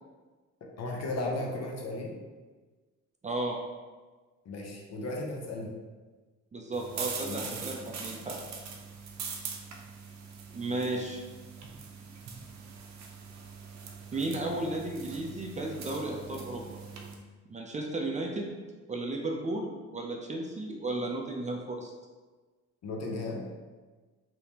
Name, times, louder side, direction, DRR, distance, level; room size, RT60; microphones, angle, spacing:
voice 1, 0.8-2.1 4.4-5.7 7.2-7.7 22.8-23.4, left 2 dB, 60° left, -1 dB, 0.9 m, -35 dB
voice 2, 3.2-3.6 6.5-8.4 10.5-11.2 14.1-16.8 17.5-18.6 18.9-21.9, right 2 dB, 25° right, 0 dB, 0.5 m, -34 dB
sound 1, 6.7-17.1, right 5 dB, 65° right, 0.7 m, -42 dB
3.4 x 2.9 x 2.9 m, 1.3 s
cardioid pair, 90°, 30 cm